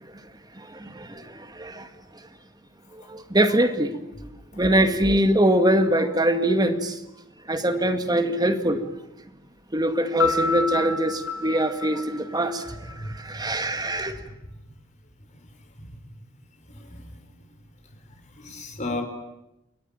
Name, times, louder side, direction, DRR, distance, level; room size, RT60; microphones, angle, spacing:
voice 1, 0.6-1.9 2.9-3.9 4.6-7.0 7.5-8.8 9.7-14.2, right 1 dB, 20° right, 2.1 m, -23 dB
Piano, 10.2-13.0, left 4 dB, 70° left, 5.1 m, -28 dB
voice 2, 16.8-17.2 18.4-19.0, left 2 dB, 35° left, 4.9 m, -33 dB
29.5 x 22.5 x 9.0 m
head